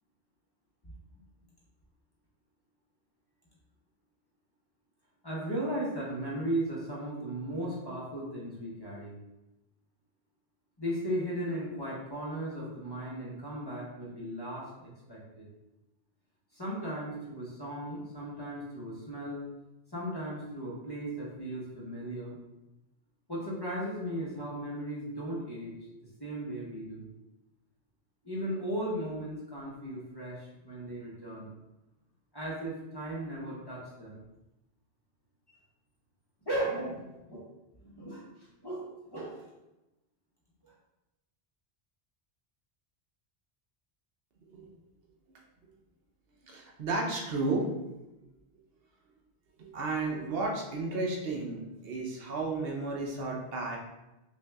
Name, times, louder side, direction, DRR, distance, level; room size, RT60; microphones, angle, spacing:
voice 1, 5.2-9.2 10.8-15.4 16.5-19.5 19.9-22.4 23.3-25.7 26.2-27.1 28.2-31.5 32.3-34.2 36.5-37.4 37.8-38.2 38.6-39.5 40.6-40.7, right 1 dB, 25° left, -6 dB, 0.9 m, -36 dB
voice 2, 46.4-47.7 49.6-53.8, right 3 dB, 70° right, 0 dB, 0.9 m, -33 dB
5.7 x 2.6 x 2.3 m, 0.97 s
omnidirectional pair, 1.0 m